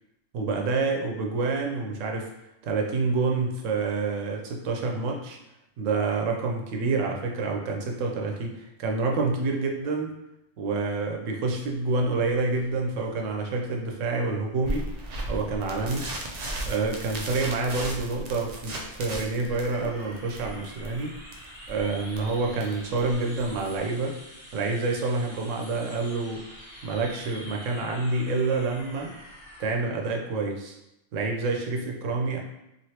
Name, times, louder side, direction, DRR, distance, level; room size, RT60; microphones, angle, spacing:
voice 1, 0.3-2.3 2.6-5.4 5.8-10.1 10.6-14.9 15.3-16.1 16.7-21.1 21.7-24.2 24.5-26.4 26.8-29.1 29.6-30.8 31.1-32.4, right 3 dB, 80° right, 1 dB, 1.0 m, -28 dB
sound 1, 11.5-29.7, equal, 20° right, 1.0 m, -48 dB
sound 2, 14.6-23.8, right 1 dB, 65° right, 0.4 m, -36 dB
3.1 x 2.6 x 2.8 m, 0.88 s
omnidirectional pair, 1.3 m